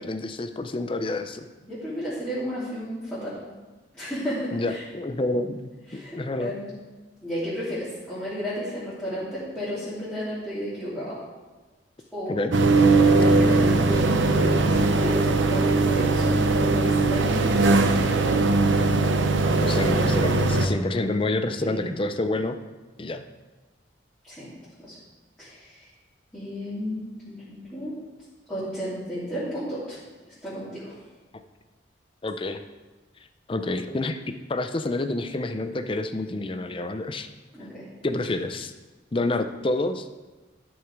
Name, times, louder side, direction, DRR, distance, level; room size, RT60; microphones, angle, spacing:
voice 1, 0.0-1.5 4.5-6.5 12.3-12.6 19.6-22.6 23.0-23.2 32.2-32.6 33.5-37.3 38.0-38.7 39.1-40.1, left 2 dB, 30° left, 9 dB, 0.5 m, -28 dB
voice 2, 1.6-3.4 3.9-4.8 5.9-6.7 7.2-11.2 12.1-12.3 13.0-17.7 21.6-21.9 24.2-24.5 24.8-24.9 25.4-25.9 26.3-27.9 28.5-30.0 30.4-30.9 37.5-37.8, equal, 5° left, -13 dB, 3.0 m, -33 dB
sound 1, 12.5-20.7, right 3 dB, 85° right, 0.8 m, -20 dB
12.5 x 6.4 x 4.7 m, 1.2 s
head